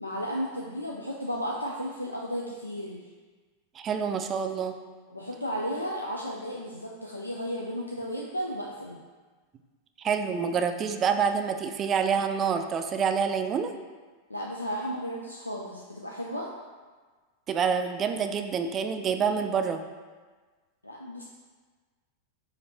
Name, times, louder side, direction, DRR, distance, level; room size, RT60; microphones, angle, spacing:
voice 1, 0.0-3.0 5.1-9.0 14.3-16.5 20.8-21.2, equal, 85° left, -2 dB, 0.3 m, -34 dB
voice 2, 3.8-4.7 10.0-13.7 17.5-19.8, right 6 dB, 25° right, 7 dB, 0.3 m, -27 dB
4.2 x 2.6 x 3.9 m, 1.4 s
figure-of-eight pair, 90°, 0 cm